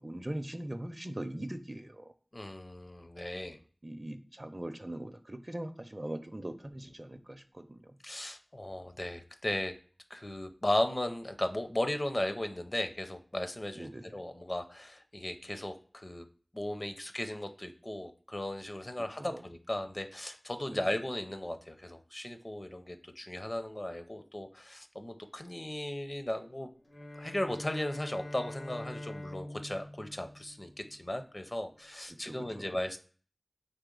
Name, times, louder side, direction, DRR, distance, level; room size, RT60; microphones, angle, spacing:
voice 1, 0.0-2.1 3.8-7.8 13.8-14.0 19.2-19.4 20.7-20.8 32.1-32.7, right 1 dB, 35° right, 9 dB, 0.5 m, -41 dB
voice 2, 2.3-3.6 8.0-9.7 10.1-16.2 16.5-26.7 27.2-33.0, left 1 dB, 35° left, 7 dB, 0.5 m, -36 dB
Bowed string instrument, 26.8-31.2, left 1 dB, 90° left, 1.1 m, -45 dB
4.1 x 3.2 x 3.7 m, 0.42 s
wide cardioid pair, 55°, 0 cm